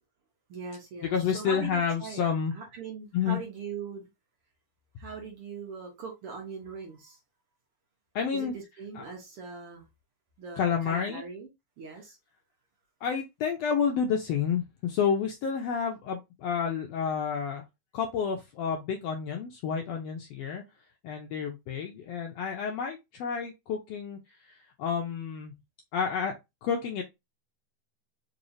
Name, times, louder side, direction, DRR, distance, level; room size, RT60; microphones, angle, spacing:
voice 1, 0.5-4.0 5.0-7.2 8.3-9.9 10.4-11.5 11.8-12.2, right 5 dB, 60° right, 1.6 m, -41 dB
voice 2, 1.0-2.5 3.1-3.4 8.1-8.5 8.9-9.0 10.6-11.2 13.0-17.6 17.9-20.6 21.0-24.2 24.8-25.5 25.9-27.0, left 7 dB, 80° left, 1.5 m, -30 dB
4.7 x 3.1 x 2.6 m
omnidirectional pair, 3.6 m